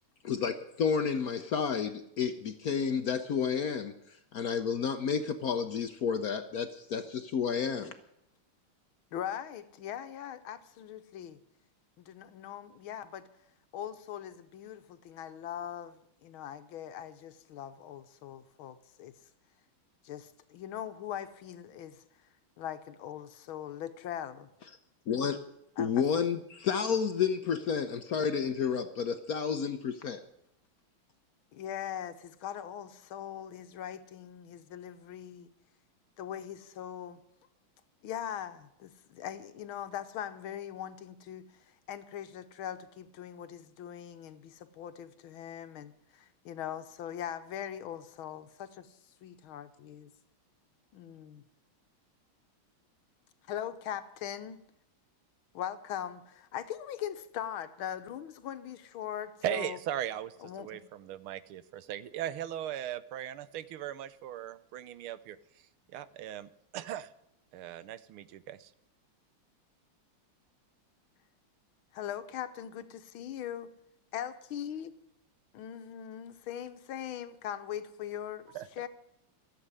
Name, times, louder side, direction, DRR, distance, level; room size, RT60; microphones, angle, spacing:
voice 1, 0.2-3.9 4.3-7.9 25.1-25.4 25.8-30.2, left 6 dB, 60° left, 9 dB, 1.0 m, -31 dB
voice 2, 9.1-11.4 12.0-13.2 13.7-19.1 20.0-22.0 22.6-24.5 25.8-26.0 31.5-35.5 36.2-37.2 38.0-50.1 50.9-51.4 53.5-54.6 55.5-59.8 60.4-60.8 71.9-73.7 74.1-74.9 75.5-78.9, left 10 dB, 75° left, 10 dB, 1.7 m, -41 dB
voice 3, 59.4-65.4 65.9-67.1 67.5-68.7 78.5-78.7, right 11 dB, 80° right, 15 dB, 1.6 m, -38 dB
14.5 x 7.8 x 9.7 m, 0.79 s
omnidirectional pair, 2.3 m